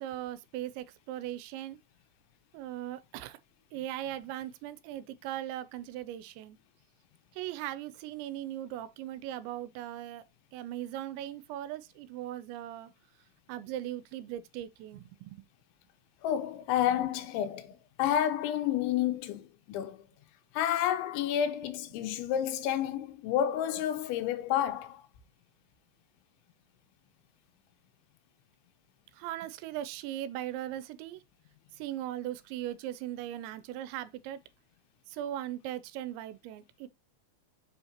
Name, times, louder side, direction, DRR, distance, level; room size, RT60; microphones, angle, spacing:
voice 1, 0.0-1.8 2.5-3.4 3.7-6.6 7.4-10.2 10.5-12.9 13.5-15.5 29.2-31.2 31.8-34.4 35.1-36.9, right 12 dB, 80° right, 2.8 m, -39 dB
voice 2, 16.2-19.4 19.7-20.0 20.6-25.0, left 10 dB, 85° left, 3.1 m, -30 dB
7.0 x 5.6 x 2.9 m
omnidirectional pair, 5.3 m